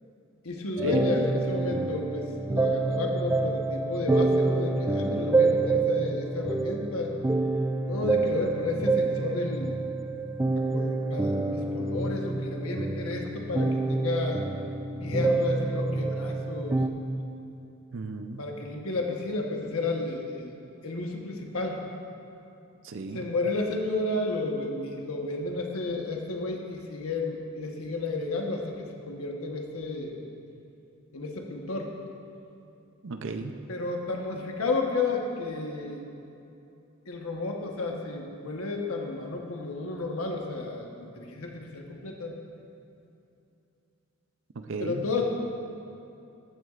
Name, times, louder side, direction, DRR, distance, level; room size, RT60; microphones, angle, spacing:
voice 1, 0.4-7.1 7.9-9.8 10.7-14.4 15.0-16.8 18.4-20.5 20.8-21.8 23.1-30.1 31.1-31.9 33.7-36.0 37.1-42.3 44.8-45.2, left 3 dB, 90° left, 1 dB, 1.2 m, -32 dB
sound 1, 0.8-16.9, right 3 dB, 10° right, 0.3 m, -27 dB
voice 2, 17.9-18.4 22.8-23.2 33.0-33.6 44.7-45.0, right 3 dB, 60° right, 7 dB, 0.6 m, -35 dB
14.0 x 9.4 x 2.5 m, 2.8 s
head